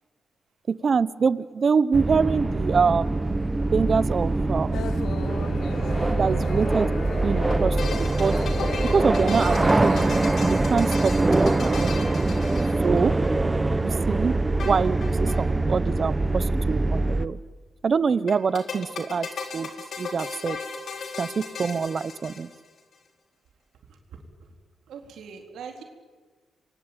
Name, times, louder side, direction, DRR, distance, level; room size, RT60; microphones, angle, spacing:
voice 1, 0.7-3.2 3.7-5.0 6.2-6.9 7.2-8.4 8.9-10.3 10.7-12.0 12.8-13.1 13.8-14.3 14.6-17.4 17.8-19.3 19.5-19.7 20.0-20.6 21.2-22.5, right 5 dB, 50° right, 17 dB, 0.9 m, -25 dB
sound 1, 1.9-17.3, right 2 dB, 20° right, 1.1 m, -23 dB
sound 2, 4.7-10.1, left 8 dB, 85° left, 1.3 m, -38 dB
sound 3, 7.5-13.3 14.6-15.4 15.7-15.8 16.0-16.1 18.3-22.8, left 5 dB, 65° left, 4.8 m, -36 dB
voice 2, 24.9-25.8, right 6 dB, 90° right, 3 dB, 4.1 m, -41 dB
29.0 x 23.0 x 8.9 m, 1.4 s
cardioid pair, 90°, 0 cm